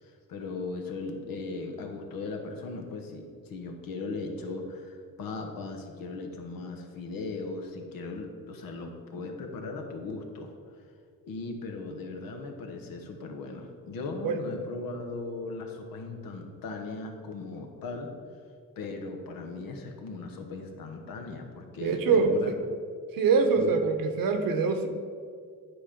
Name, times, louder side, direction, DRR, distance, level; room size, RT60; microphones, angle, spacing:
voice 1, 0.0-10.5 11.2-18.1 18.8-22.5 23.5-23.7, left 3 dB, 90° left, 4 dB, 1.1 m, -38 dB
voice 2, 21.8-22.6 23.1-24.9, right 4 dB, 85° right, 6 dB, 0.9 m, -24 dB
9.8 x 4.4 x 5.0 m, 2.1 s
cardioid pair, 105°, 33 cm